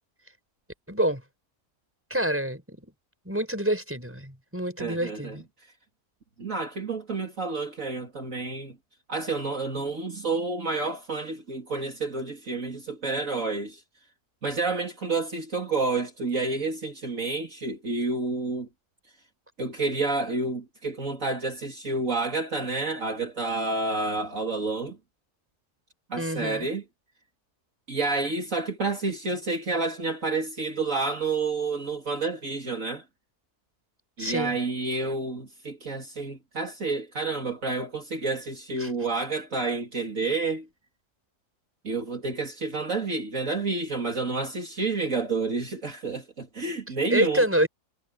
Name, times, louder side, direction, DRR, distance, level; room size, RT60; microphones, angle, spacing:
voice 1, 0.9-1.2 2.1-2.9 3.2-5.4 26.2-26.7 34.2-34.5 38.8-38.9 47.1-47.7, right 1 dB, 10° right, 6.6 m, -27 dB
voice 2, 4.8-5.4 6.4-8.8 9.1-13.8 14.4-18.7 19.6-25.0 26.1-26.8 27.9-33.0 34.2-40.7 41.8-47.4, right 3 dB, 55° right, 3.2 m, -29 dB
omnidirectional pair, 1.7 m